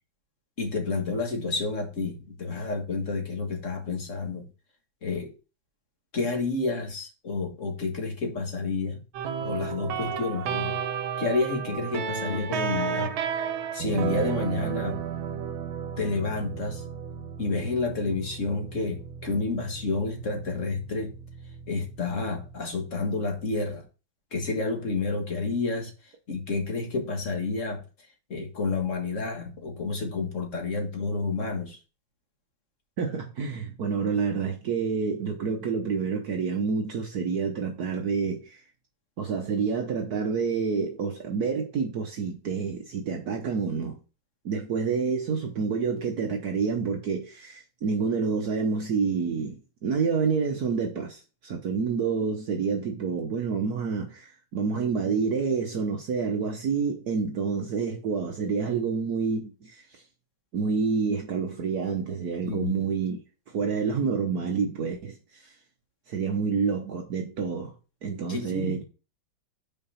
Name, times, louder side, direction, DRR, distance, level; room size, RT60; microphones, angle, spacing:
voice 1, 0.6-4.4 5.0-5.3 6.1-9.0 9.4-10.8 11.2-13.1 13.7-15.0 16.0-16.8 17.4-21.1 21.7-23.8 24.3-27.8 28.3-31.8 62.4-62.9 68.3-68.8, left 3 dB, 40° left, 1.6 m, -30 dB
sound 1, 9.1-22.6, right 7 dB, 85° right, 1.6 m, -33 dB
voice 2, 33.0-38.6 39.2-44.0 44.4-60.0 60.5-63.2 63.5-65.5 66.1-67.7 68.0-68.8, right 5 dB, 55° right, 1.2 m, -28 dB
5.7 x 4.6 x 5.6 m
omnidirectional pair, 2.2 m